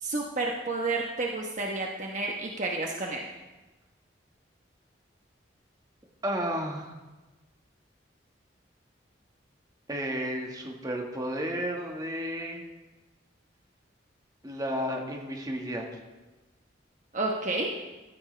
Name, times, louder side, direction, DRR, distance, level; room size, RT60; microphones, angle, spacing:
voice 1, 0.0-3.3 17.1-17.8, right 2 dB, 40° right, 0 dB, 1.1 m, -30 dB
voice 2, 6.2-6.9 9.9-12.7 14.4-15.8, equal, 20° right, 0 dB, 1.7 m, -32 dB
15.0 x 13.5 x 3.4 m, 1.2 s
head